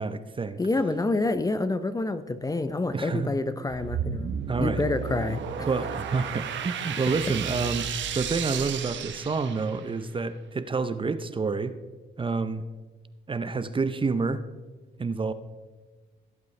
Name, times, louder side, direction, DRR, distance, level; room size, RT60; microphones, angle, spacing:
voice 1, 0.0-0.6 2.9-3.3 4.5-4.8 5.7-11.7 12.2-12.6 13.3-14.4 15.0-15.3, right 4 dB, 25° right, 11 dB, 0.6 m, -28 dB
voice 2, 0.6-5.7, left 2 dB, 20° left, 11 dB, 0.6 m, -28 dB
sound 1, 3.7-10.0, right 7 dB, 70° right, 1.0 m, -33 dB
16.5 x 8.1 x 3.2 m, 1.3 s
cardioid pair, 90°, 20 cm